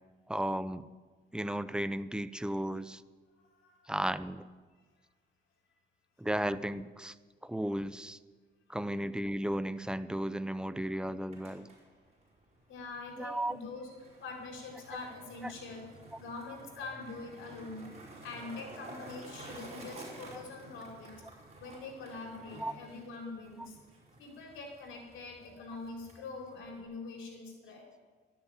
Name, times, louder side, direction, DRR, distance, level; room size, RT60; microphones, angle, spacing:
voice 1, 0.3-0.9 1.3-3.0 3.9-4.5 6.2-7.1 7.4-8.2 8.7-11.7 13.2-13.6 15.4-15.5 22.6-22.7, right 1 dB, 5° right, 13 dB, 0.6 m, -34 dB
voice 2, 3.4-3.9 12.7-13.9 14.2-15.9 16.2-17.9 18.2-21.2 21.6-23.8 24.2-27.9, left 3 dB, 80° left, 0 dB, 4.5 m, -44 dB
Skateboard, 11.3-26.8, right 2 dB, 35° right, 5.0 m, -52 dB
13.0 x 10.5 x 8.9 m, 1.4 s
cardioid pair, 90°, 20 cm